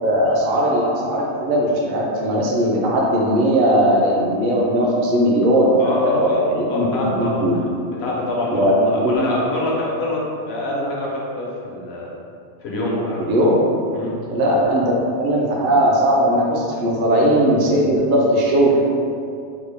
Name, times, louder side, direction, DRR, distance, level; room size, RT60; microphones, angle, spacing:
voice 1, 0.0-7.5 8.5-9.3 13.2-13.5 14.3-14.9 15.2-18.8, right 1 dB, 60° right, -3 dB, 0.6 m, -18 dB
voice 2, 5.8-6.4 6.7-7.7 8.0-12.1 12.6-13.2 13.9-14.1, left 1 dB, 65° left, -4 dB, 0.9 m, -25 dB
3.5 x 2.1 x 3.3 m, 2.4 s
omnidirectional pair, 1.2 m